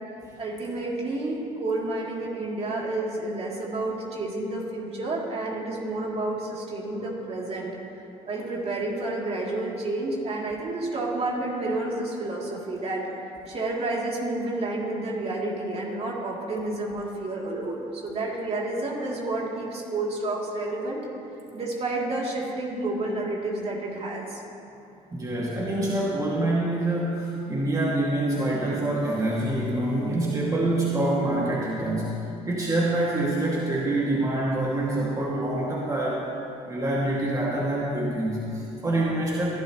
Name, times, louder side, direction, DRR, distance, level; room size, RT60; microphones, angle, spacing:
voice 1, 0.4-7.7 8.3-13.1 13.5-21.1 21.5-24.4, right 2 dB, 45° right, -3 dB, 3.0 m, -30 dB
voice 2, 25.1-32.2 32.4-36.3 36.7-39.6, right 1 dB, 25° right, -5 dB, 2.3 m, -26 dB
22.0 x 12.0 x 3.1 m, 2.9 s
cardioid pair, 85°, 14 cm